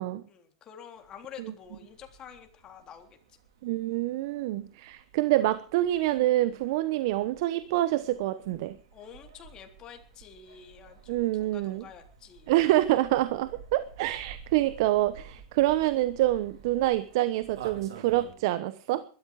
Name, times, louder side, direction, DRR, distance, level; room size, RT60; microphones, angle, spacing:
voice 1, 0.3-3.4 8.9-12.5, left 8 dB, 30° left, 5 dB, 3.6 m, -48 dB
sound 1, 1.0-18.3, right 6 dB, 80° right, 4.8 m, -51 dB
voice 2, 3.6-8.8 11.1-11.8 12.5-19.0, right 15 dB, 60° right, 13 dB, 1.0 m, -26 dB
21.0 x 13.0 x 4.9 m, 0.42 s
supercardioid pair, 130°, 2 cm